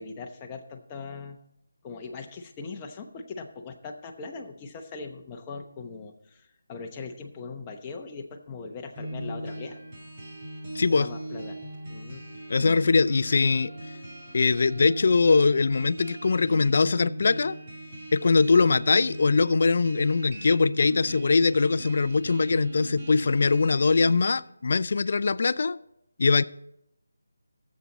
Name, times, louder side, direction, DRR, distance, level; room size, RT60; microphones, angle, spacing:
voice 1, 0.0-1.4 1.8-9.8 10.9-11.6 11.9-12.2, left 4 dB, 15° left, 2 dB, 0.9 m, -40 dB
sound 1, 9.0-24.3, right 1 dB, 35° right, 2.3 m, -39 dB
voice 2, 10.7-11.1 12.5-13.7 14.3-17.6 18.1-25.8 26.2-26.4, left 4 dB, 50° left, 17 dB, 0.4 m, -22 dB
16.0 x 7.3 x 4.1 m, 0.81 s
figure-of-eight pair, 165°, 0 cm